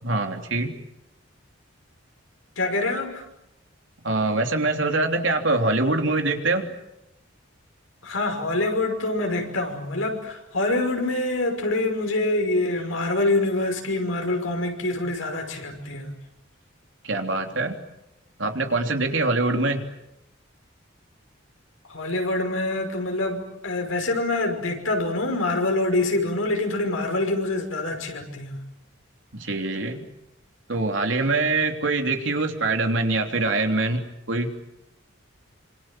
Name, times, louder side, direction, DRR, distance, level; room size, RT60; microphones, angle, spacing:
voice 1, 0.0-0.7 4.0-6.7 17.0-17.8 18.4-19.8 29.3-30.1 30.7-34.5, right 2 dB, 70° right, 4 dB, 3.3 m, -24 dB
voice 2, 2.6-3.2 8.0-16.1 21.9-28.6, left 2 dB, 90° left, 4 dB, 5.8 m, -25 dB
27.0 x 26.5 x 7.6 m, 0.88 s
head